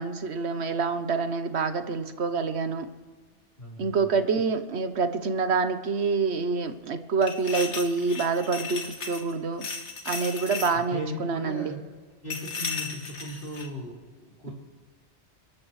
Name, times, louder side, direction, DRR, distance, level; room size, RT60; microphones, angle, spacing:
voice 1, 0.0-2.9 3.8-9.6 10.0-11.7, right 4 dB, 70° right, 9 dB, 1.2 m, -27 dB
voice 2, 3.6-4.0 10.7-11.8 12.2-14.5, left 1 dB, 55° left, -4 dB, 4.7 m, -37 dB
sound 1, 7.2-9.3 9.6-10.7 12.3-13.7, left 4 dB, 75° left, 1.9 m, -35 dB
30.0 x 12.0 x 3.2 m, 1.4 s
omnidirectional pair, 1.2 m